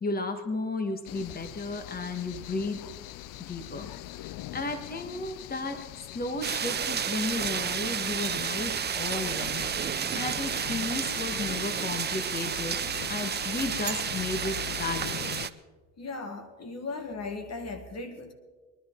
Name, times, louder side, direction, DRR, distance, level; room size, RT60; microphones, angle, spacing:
voice 1, 0.0-2.8 3.4-3.9 4.1-5.9 6.1-9.6 10.1-12.8 13.1-15.4, left 3 dB, 25° left, 7 dB, 1.6 m, -34 dB
sound 1, 1.0-15.5, left 15 dB, 60° left, 0.5 m, -42 dB
sound 2, 6.4-15.5, right 8 dB, 30° right, 0.6 m, -31 dB
voice 2, 16.0-18.3, left 3 dB, 45° left, 7 dB, 1.7 m, -37 dB
23.0 x 11.0 x 3.8 m, 1.3 s
supercardioid pair, 85°, 37 cm